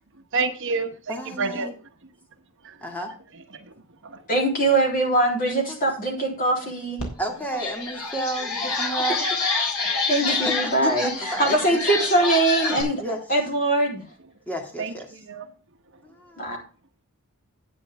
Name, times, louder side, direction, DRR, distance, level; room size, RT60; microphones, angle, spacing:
voice 1, 0.3-1.7 2.6-2.7 3.5-3.6 4.0-4.2 14.8-14.9 15.3-15.5, right 4 dB, 60° right, 1.2 m, -28 dB
voice 2, 1.1-1.7 2.8-3.1 5.7-5.8 7.2-9.2 10.2-11.8 13.0-13.2 14.5-15.1 16.0-16.4, right 1 dB, 5° left, 2.1 m, -31 dB
voice 3, 4.3-7.0 10.1-13.0 13.3-14.0 16.4-16.6, right 2 dB, 40° left, 3.7 m, -22 dB
sound 1, 7.0-7.1 7.5-12.8, left 3 dB, 80° left, 3.7 m, -27 dB
11.0 x 9.0 x 3.6 m
head